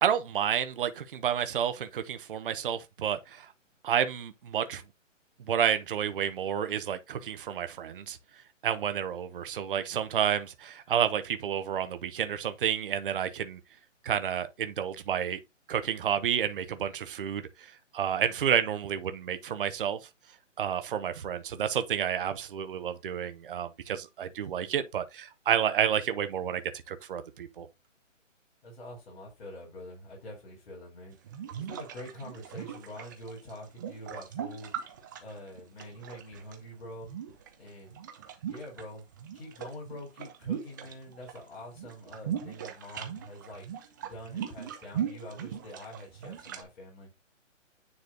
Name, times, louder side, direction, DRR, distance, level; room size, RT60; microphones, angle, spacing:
voice 1, 0.0-3.5 3.8-4.8 5.5-8.2 8.6-13.6 14.0-15.4 15.7-20.0 20.6-26.6 26.9-27.7, right 9 dB, 45° right, 0.9 m, -30 dB
voice 2, 28.6-34.7 35.2-37.1 37.6-38.0 38.5-43.7 44.0-47.1, left 1 dB, 50° left, 3.8 m, -45 dB
sound 1, 31.1-36.6 37.0-38.8 39.1-41.4 41.6-46.6, right 9 dB, 15° right, 0.6 m, -39 dB
9.6 x 3.2 x 3.8 m
hypercardioid pair, 150°, 38 cm